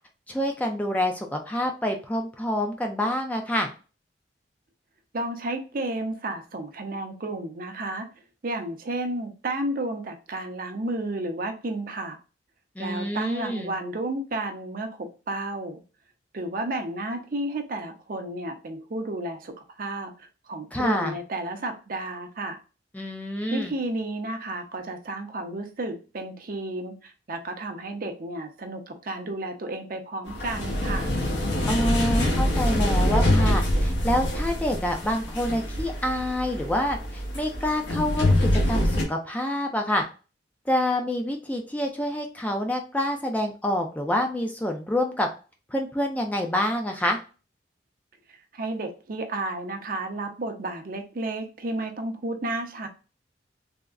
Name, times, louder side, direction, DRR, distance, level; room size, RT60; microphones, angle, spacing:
voice 1, 0.3-3.7 12.8-13.7 20.7-21.2 22.9-23.7 31.7-40.0 40.7-45.3 45.7-47.2, left 1 dB, 10° left, 3 dB, 0.4 m, -27 dB
voice 2, 5.1-8.1 8.4-12.2 12.8-15.8 16.3-22.6 23.5-31.1 48.5-52.9, right 2 dB, 50° right, 5 dB, 0.5 m, -32 dB
sound 1, 30.3-39.0, left 1 dB, 80° left, 0.9 m, -25 dB
3.5 x 2.0 x 2.3 m, 0.34 s
head